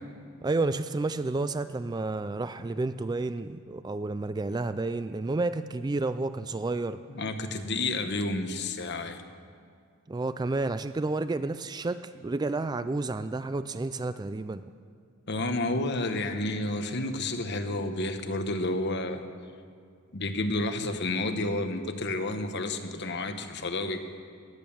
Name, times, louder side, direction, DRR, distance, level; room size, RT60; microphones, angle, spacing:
voice 1, 0.4-7.0 10.1-14.6, right 3 dB, 20° right, 12 dB, 0.3 m, -30 dB
voice 2, 7.1-9.2 15.3-19.2 20.1-24.0, left 2 dB, 50° left, 7 dB, 1.1 m, -30 dB
17.5 x 11.0 x 7.2 m, 2.2 s
head